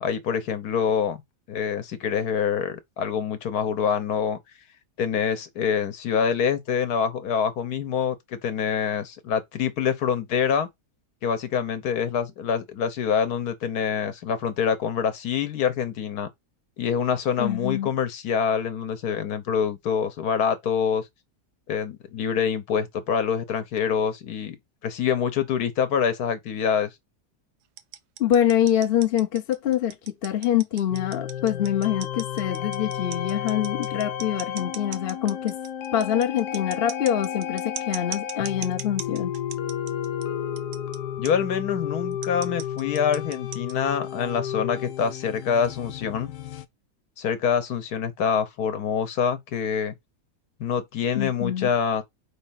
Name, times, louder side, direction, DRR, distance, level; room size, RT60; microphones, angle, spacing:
voice 1, 0.0-1.2 1.5-4.4 5.0-10.7 11.2-16.3 16.8-21.0 21.7-24.6 24.8-26.9 41.2-46.3 47.2-49.9 50.6-52.0, left 7 dB, 70° left, 1.4 m, -25 dB
voice 2, 17.4-17.9 28.2-35.6 35.9-39.3 51.1-51.7, left 10 dB, 50° left, 0.8 m, -25 dB
sound 1, 27.8-40.2 40.6-41.0 41.2-41.3 42.1-43.9, right 10 dB, 80° right, 1.2 m, -38 dB
sound 2, 30.9-46.7, left 9 dB, 90° left, 1.3 m, -32 dB
4.5 x 3.9 x 5.6 m
omnidirectional pair, 1.7 m